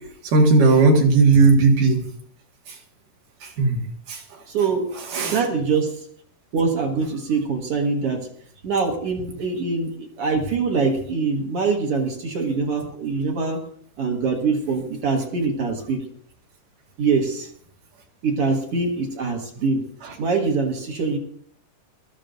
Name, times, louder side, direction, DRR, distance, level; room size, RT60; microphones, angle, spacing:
voice 1, 0.3-2.0 3.6-3.8 4.1-4.2 5.1-5.5, right 3 dB, 75° right, 1 dB, 3.4 m, -16 dB
voice 2, 4.5-4.9 5.3-6.0 6.5-8.3 8.6-13.6 14.0-16.0 17.0-17.5 18.2-19.8 20.2-21.2, right 4 dB, 55° right, 1 dB, 2.0 m, -23 dB
20.5 x 13.5 x 2.6 m, 0.62 s
omnidirectional pair, 3.8 m